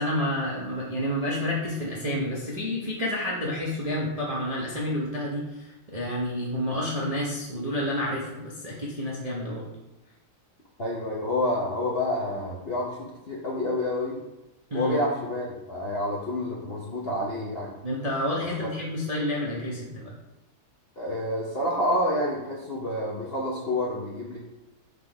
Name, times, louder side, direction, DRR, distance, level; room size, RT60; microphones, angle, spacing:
voice 1, 0.0-9.6 14.7-15.0 17.8-20.1, left 1 dB, 30° right, -5 dB, 0.7 m, -29 dB
voice 2, 10.8-14.2 14.7-17.7 21.0-24.4, left 1 dB, 45° left, -5 dB, 0.8 m, -28 dB
5.0 x 4.1 x 4.9 m, 0.97 s
omnidirectional pair, 2.4 m